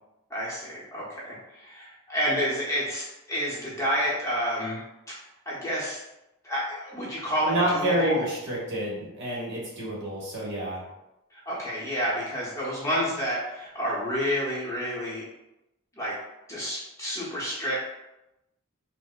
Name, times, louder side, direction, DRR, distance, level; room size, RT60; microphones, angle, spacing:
voice 1, 0.3-4.8 5.5-6.0 6.4-8.2 11.3-15.2 16.0-16.2 16.5-17.7, equal, 15° left, -7 dB, 0.8 m, -29 dB
voice 2, 7.4-10.8, right 1 dB, 60° right, -5 dB, 1.2 m, -28 dB
4.5 x 2.0 x 2.4 m, 0.92 s
head